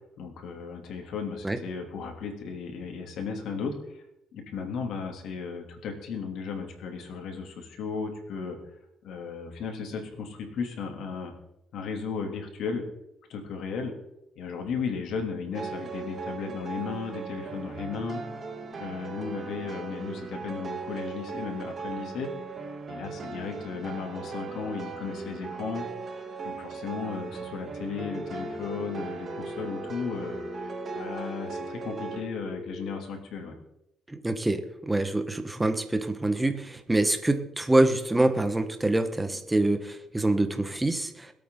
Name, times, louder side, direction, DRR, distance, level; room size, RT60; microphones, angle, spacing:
voice 1, 0.2-4.0 4.3-8.6 9.0-11.3 11.7-12.8 13.3-13.9 14.4-18.2 18.8-22.3 22.9-25.8 26.4-33.5, left 5 dB, 75° left, 3 dB, 3.0 m, -35 dB
sound 1, 15.5-32.2, right 5 dB, 45° right, 2.0 m, -38 dB
Telephone, 28.0-33.0, left 2 dB, 10° left, 1.1 m, -40 dB
voice 2, 34.1-41.3, right 2 dB, 15° right, 8 dB, 1.5 m, -25 dB
22.0 x 8.7 x 4.0 m, 0.83 s
cardioid pair, 90°, 0 cm